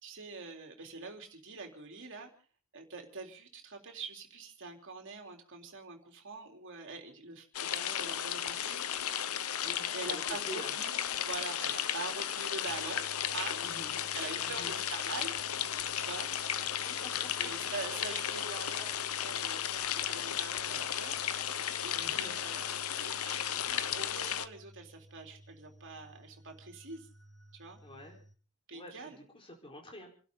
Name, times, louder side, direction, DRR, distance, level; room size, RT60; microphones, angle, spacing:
voice 1, 0.0-2.3 2.7-8.8 9.9-11.0 11.2-13.0 13.3-15.3 15.8-17.0 17.4-21.5 21.8-22.7 23.0-27.1 27.5-27.8 28.7-29.2, right 4 dB, 60° right, 3 dB, 3.9 m, -44 dB
sound 1, 7.5-24.5, left 10 dB, 75° left, 0.9 m, -35 dB
voice 2, 9.6-10.7 13.6-14.0 14.4-14.8 16.8-17.7 21.9-22.4 27.8-28.2 28.7-30.1, equal, 25° left, 1 dB, 4.5 m, -48 dB
sound 2, 12.7-28.3, right 1 dB, 5° left, 6.0 m, -57 dB
29.5 x 12.0 x 4.0 m, 0.39 s
head